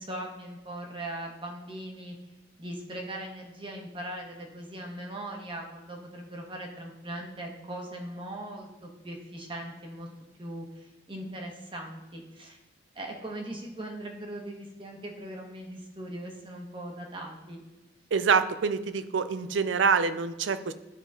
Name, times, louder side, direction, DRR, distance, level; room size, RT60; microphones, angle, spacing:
voice 1, 0.0-2.1 2.6-10.1 10.4-12.6 12.9-17.6, right 1 dB, 30° right, 0 dB, 1.4 m, -40 dB
voice 2, 18.1-20.7, right 5 dB, 85° right, 12 dB, 0.5 m, -26 dB
11.5 x 5.0 x 3.8 m, 1.0 s
head